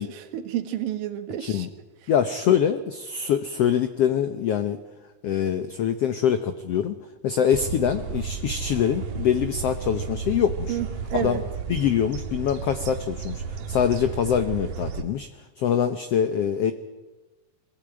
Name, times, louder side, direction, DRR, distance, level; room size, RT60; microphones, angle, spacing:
voice 1, 0.0-1.7 2.0-2.1 10.7-11.4, right 11 dB, 80° right, 8 dB, 3.2 m, -30 dB
voice 2, 2.1-4.8 5.2-7.0 7.2-10.8 11.1-11.4 11.7-15.3 15.6-16.7, left 8 dB, 80° left, 10 dB, 1.4 m, -24 dB
sound 1, 7.5-15.0, right 6 dB, 65° right, 2.2 m, -33 dB
22.5 x 16.0 x 8.9 m, 1.1 s
omnidirectional pair, 4.0 m